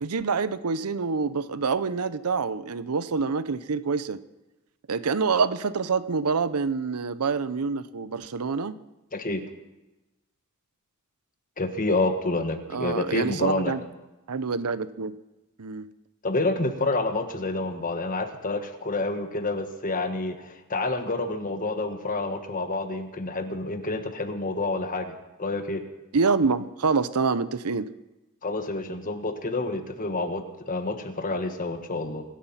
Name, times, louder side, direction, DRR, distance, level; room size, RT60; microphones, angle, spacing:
voice 1, 0.0-4.2 4.9-8.8 12.7-13.8 14.3-15.1 15.6-15.9 26.1-27.9, right 4 dB, 85° right, 14 dB, 0.7 m, -26 dB
voice 2, 9.1-9.4 11.6-13.7 16.2-25.8 28.4-32.2, left 2 dB, 40° left, 7 dB, 1.4 m, -28 dB
24.5 x 8.7 x 5.7 m, 1.0 s
head